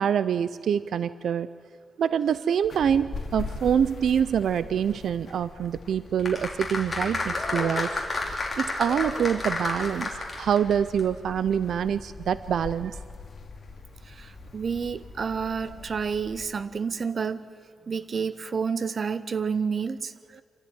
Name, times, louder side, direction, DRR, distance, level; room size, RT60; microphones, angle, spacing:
voice 1, 0.0-1.5 2.0-7.9 8.6-13.0, right 8 dB, 75° right, 15 dB, 0.5 m, -25 dB
sound 1, 2.6-16.4, left 3 dB, 45° left, 2.3 m, -42 dB
sound 2, 6.2-10.7 11.0-11.1, left 2 dB, 20° left, 3.5 m, -30 dB
voice 2, 14.1-17.5 17.9-20.4, right 6 dB, 40° right, 14 dB, 0.8 m, -30 dB
26.0 x 14.0 x 9.8 m, 2.1 s
wide cardioid pair, 160°, 0 cm